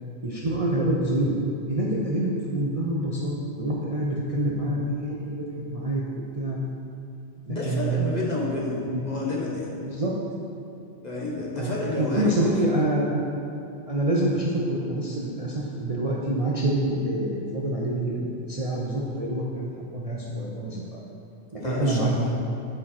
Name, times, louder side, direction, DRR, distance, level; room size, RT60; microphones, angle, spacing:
voice 1, 0.2-1.3 1.7-5.4 5.7-6.6 7.5-8.1 8.7-9.0 9.8-10.1 11.6-11.7 12.0-13.2 13.9-20.9 21.5-22.3, right 1 dB, 35° right, -5 dB, 0.6 m, -26 dB
voice 2, 7.5-9.7 11.0-12.7 21.6-22.3, left 2 dB, 35° left, -4 dB, 1.1 m, -29 dB
9.9 x 4.5 x 4.2 m, 2.6 s
omnidirectional pair, 1.4 m